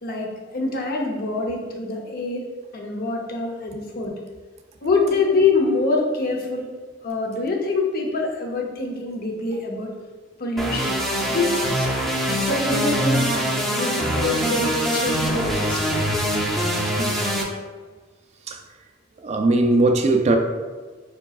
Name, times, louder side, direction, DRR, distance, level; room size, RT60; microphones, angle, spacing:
voice 1, 0.0-2.5 2.7-4.2 4.8-6.7 7.0-9.9 10.4-11.0 11.3-11.9 12.3-13.3 13.7-16.0, left 3 dB, 50° left, 0.8 m, -25 dB
sound 1, 10.6-17.4, equal, ahead, 0.6 m, -23 dB
voice 2, 19.2-20.4, right 2 dB, 35° right, 0.4 m, -19 dB
4.9 x 4.5 x 2.4 m
head